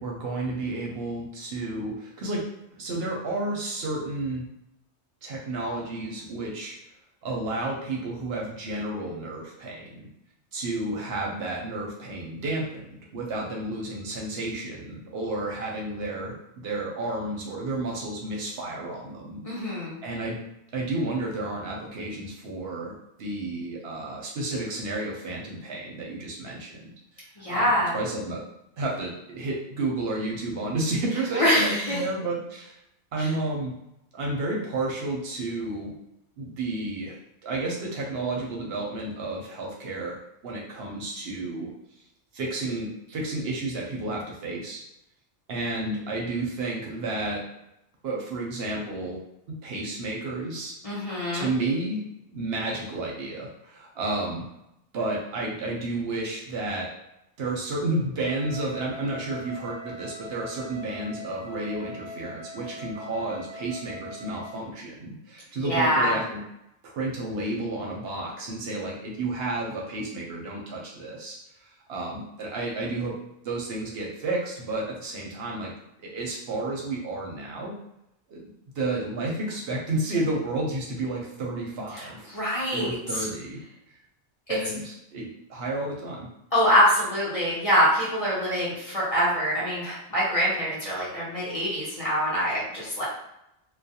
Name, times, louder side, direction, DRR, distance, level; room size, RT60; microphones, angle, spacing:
voice 1, 0.0-2.4 2.8-4.5 5.2-6.7 7.2-10.1 10.5-16.3 16.6-20.4 20.7-28.4 28.8-32.8 33.1-33.7 34.1-35.9 36.4-37.2 37.4-40.2 40.4-41.7 42.3-44.8 45.5-47.5 48.0-49.2 49.6-50.7 51.3-52.0 52.3-54.4 54.9-56.9 57.4-66.4 66.8-73.1 73.4-75.7 76.0-77.7 78.3-78.4 78.7-83.6 84.5-86.3, right 2 dB, 65° right, -2 dB, 0.7 m, -31 dB
voice 2, 19.4-20.0 27.4-27.9 31.3-32.0 33.2-33.3 50.8-51.5 65.6-66.1 81.9-83.3 86.5-93.0, equal, 35° left, -8 dB, 0.7 m, -24 dB
Wind instrument woodwind instrument, 58.2-64.7, equal, 80° left, 0.9 m, -42 dB
2.3 x 2.1 x 2.7 m, 0.84 s
omnidirectional pair, 1.2 m